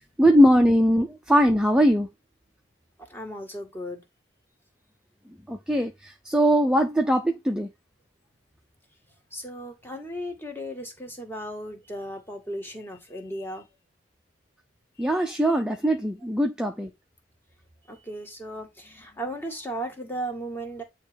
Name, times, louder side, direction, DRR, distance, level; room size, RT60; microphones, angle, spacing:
voice 1, 0.2-2.1 5.5-5.9 6.3-7.7 15.0-16.9, equal, 5° right, 0.6 m, -20 dB
voice 2, 3.1-4.0 9.3-13.7 15.0-15.3 17.9-20.8, right 1 dB, 10° left, 1.7 m, -36 dB
9.3 x 3.2 x 5.1 m
head